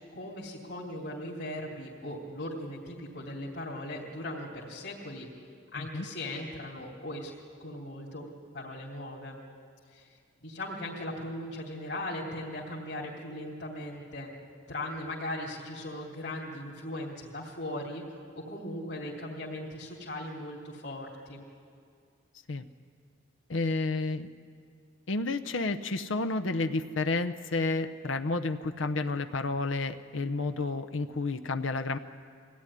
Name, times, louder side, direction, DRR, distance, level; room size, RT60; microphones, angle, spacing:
voice 1, 0.1-5.3 5.7-7.3 7.6-8.2 8.5-9.4 9.9-10.2 10.4-14.3 14.7-21.4, left 1 dB, 65° left, -4 dB, 3.0 m, -38 dB
voice 2, 23.5-24.3 25.1-32.0, left 3 dB, 90° left, 7 dB, 0.8 m, -30 dB
23.5 x 17.0 x 10.0 m, 2.2 s
head